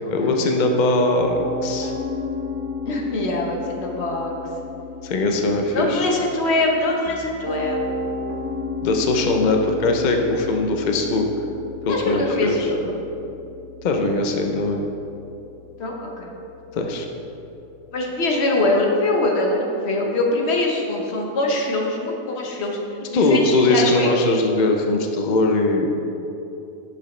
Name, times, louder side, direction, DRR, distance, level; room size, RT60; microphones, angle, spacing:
voice 1, 0.1-1.9 5.0-6.1 8.8-11.3 11.9-12.7 13.8-14.8 16.7-17.1 23.1-25.9, left 2 dB, 90° left, 3 dB, 0.4 m, -20 dB
Piano, 1.2-18.3, left 4 dB, 35° right, 0.4 m, -34 dB
voice 2, 2.9-4.3 5.7-7.8 11.9-12.9 15.8-16.3 17.9-22.8 23.1-24.1, left 2 dB, 50° left, 0 dB, 1.1 m, -23 dB
7.9 x 6.7 x 3.2 m, 2.9 s
omnidirectional pair, 1.6 m